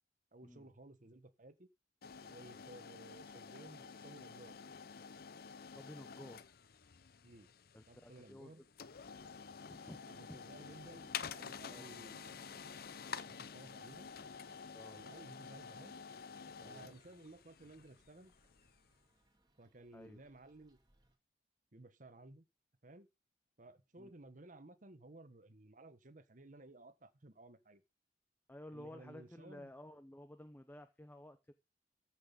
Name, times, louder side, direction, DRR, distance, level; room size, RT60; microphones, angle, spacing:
voice 1, 0.3-1.7 2.3-4.6 7.2-7.5 7.9-8.6 10.1-12.8 13.3-14.1 14.9-16.0 16.6-18.3 19.6-20.8 21.7-22.4 22.8-23.1 23.6-27.8 28.7-29.7, right 2 dB, 45° right, 1.2 m, -57 dB
sound 1, 2.0-18.9, left 6 dB, 60° left, 0.6 m, -50 dB
voice 2, 5.6-6.4 7.7-8.6 9.7-10.0 10.3-10.4 11.7-12.0 14.7-15.0 16.6-16.8 19.9-20.2 24.0-24.1 28.5-31.5, left 1 dB, 10° left, 0.8 m, -53 dB
sound 2, 10.3-21.2, right 1 dB, 25° right, 2.7 m, -73 dB
14.5 x 6.2 x 5.2 m
head